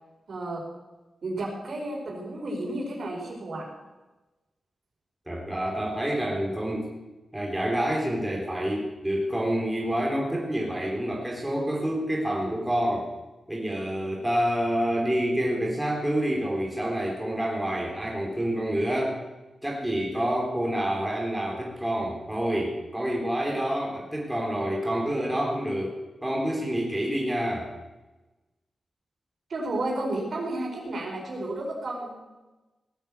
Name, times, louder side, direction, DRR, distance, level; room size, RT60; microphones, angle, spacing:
voice 1, 0.3-0.6 1.2-3.6 29.5-32.2, right 2 dB, 60° right, -1 dB, 5.1 m, -32 dB
voice 2, 5.3-6.9 7.3-13.1 13.5-19.2 19.6-27.7, equal, 10° right, -2 dB, 3.6 m, -28 dB
18.0 x 8.9 x 8.1 m, 1.1 s
wide cardioid pair, 120°, 0 cm